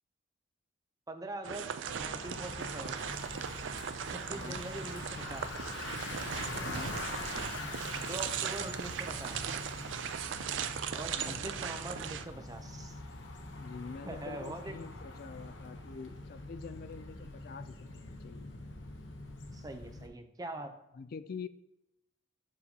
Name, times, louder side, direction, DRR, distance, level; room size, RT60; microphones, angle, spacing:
voice 1, 1.1-1.7 2.0-3.0 4.1-5.7 7.6-9.5 10.9-13.0 14.0-14.8 19.5-20.8, right 2 dB, 20° right, 7 dB, 0.6 m, -43 dB
sound 1, 1.4-12.2, right 8 dB, 85° right, 0.4 m, -38 dB
Bicycle, 1.9-20.1, left 2 dB, 90° left, 0.9 m, -44 dB
sound 2, 1.9-3.9 5.0-5.1 5.9-6.1 6.6-7.0 7.6-7.9 9.2-9.3, left 2 dB, 20° left, 1.1 m, -60 dB
voice 2, 4.3-4.7 6.6-7.0 11.0-11.4 13.6-18.5 20.9-21.5, left 5 dB, 55° left, 13 dB, 0.4 m, -45 dB
11.0 x 4.0 x 2.8 m, 0.89 s
head